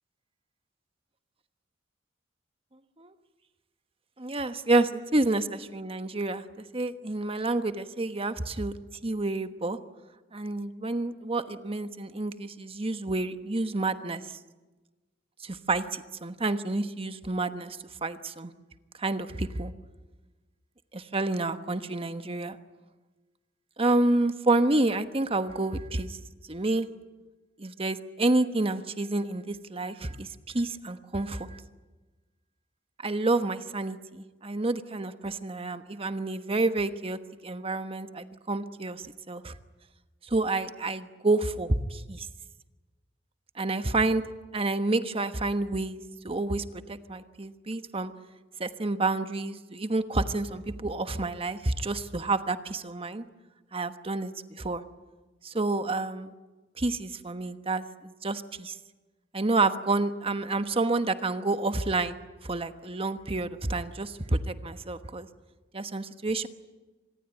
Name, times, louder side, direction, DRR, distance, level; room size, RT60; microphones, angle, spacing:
voice 1, 4.2-6.4 6.7-8.8 9.0-9.8 10.3-14.4 15.4-18.5 19.0-19.7 20.9-22.6 23.8-26.2 26.5-26.9 27.6-31.6 33.0-39.6 40.3-42.3 43.6-44.2 44.5-48.1 48.6-53.2 53.7-54.8 55.4-56.3 56.8-58.8 59.3-65.3 65.7-66.5, right 2 dB, 30° right, 10 dB, 1.2 m, -29 dB
26.5 x 20.5 x 9.1 m, 1.2 s
head